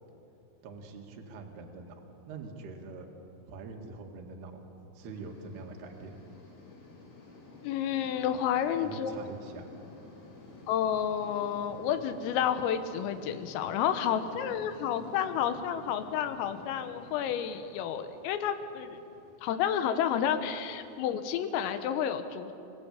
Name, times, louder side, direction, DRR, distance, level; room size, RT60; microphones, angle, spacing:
voice 1, 0.6-3.1 3.5-4.6 4.9-6.1 8.8-9.7, right 4 dB, 60° right, 2 dB, 3.7 m, -44 dB
sound 1, 5.0-21.8, left 3 dB, 60° left, 5.9 m, -52 dB
voice 2, 7.6-9.1 10.7-19.0 19.4-22.5, left 9 dB, 85° left, 9 dB, 3.8 m, -30 dB
28.5 x 18.5 x 8.4 m, 2.8 s
omnidirectional pair, 5.9 m